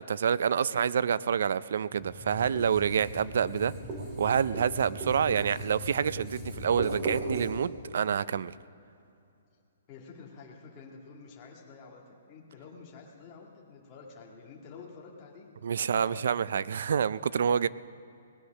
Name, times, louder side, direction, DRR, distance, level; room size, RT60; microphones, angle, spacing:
voice 1, 0.0-3.7 4.2-8.5 15.6-17.7, right 7 dB, 60° right, 19 dB, 0.4 m, -27 dB
Writing, 1.9-7.5, right 1 dB, 15° right, 2.5 m, -38 dB
voice 2, 9.9-15.5 15.8-16.3, left 5 dB, 25° left, -2 dB, 1.9 m, -49 dB
19.5 x 9.8 x 6.4 m, 2.6 s
hypercardioid pair, 170°, 0 cm